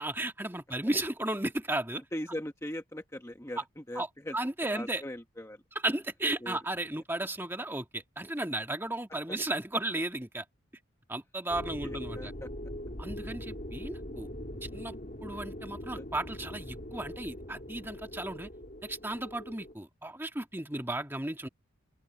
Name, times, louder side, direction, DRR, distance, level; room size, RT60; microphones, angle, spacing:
voice 1, 0.0-2.0 4.0-4.1 4.3-5.0 5.8-10.4 11.1-12.3 13.0-14.3 14.6-15.0 15.2-18.5 18.8-21.5, right 1 dB, 10° right, 1.8 m, -34 dB
voice 2, 2.1-4.4 4.7-5.6 6.4-6.6 9.3-9.4 11.8-12.5 15.9-16.0, left 1 dB, 15° left, 1.2 m, -40 dB
sound 1, 11.5-19.7, equal, 40° left, 3.3 m, -42 dB
open air
head